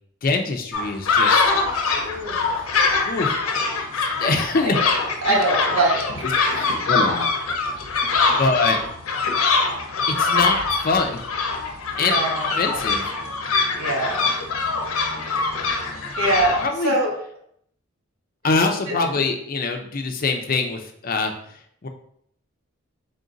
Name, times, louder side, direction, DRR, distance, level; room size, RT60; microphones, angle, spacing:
voice 1, 0.2-1.4 3.1-3.4 4.2-4.8 6.5-7.3 8.4-8.8 10.2-11.2 12.0-12.2 12.6-13.0 16.6-16.9 18.4-21.3 21.8-21.9, left 3 dB, 40° left, 4 dB, 0.5 m, -23 dB
sound 1, 0.7-16.7, left 4 dB, 90° left, 0.6 m, -23 dB
voice 2, 1.9-2.6 5.2-6.9 11.9-12.5 13.8-14.3 16.2-17.1 18.9-19.0, right 2 dB, 90° right, -1 dB, 1.2 m, -24 dB
3.8 x 2.5 x 3.8 m, 0.67 s
head